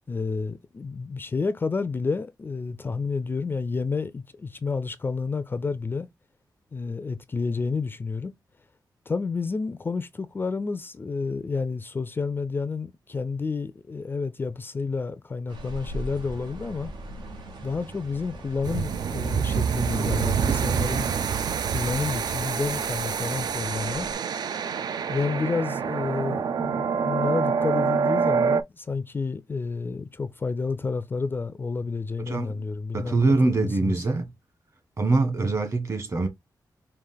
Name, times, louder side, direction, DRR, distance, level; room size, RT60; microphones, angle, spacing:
voice 1, 0.1-6.1 6.7-8.3 9.1-16.9 17.6-21.1 21.7-24.1 25.1-33.2 33.6-33.9, left 4 dB, 30° left, 0.4 m, -30 dB
sound 1, 15.5-24.1, right 1 dB, 90° right, 1.2 m, -40 dB
sound 2, 18.6-28.6, right 6 dB, 65° right, 0.4 m, -26 dB
voice 2, 32.3-32.6 32.9-34.3 35.0-36.3, right 3 dB, 40° right, 1.5 m, -23 dB
4.8 x 2.4 x 3.7 m
wide cardioid pair, 150°, 7 cm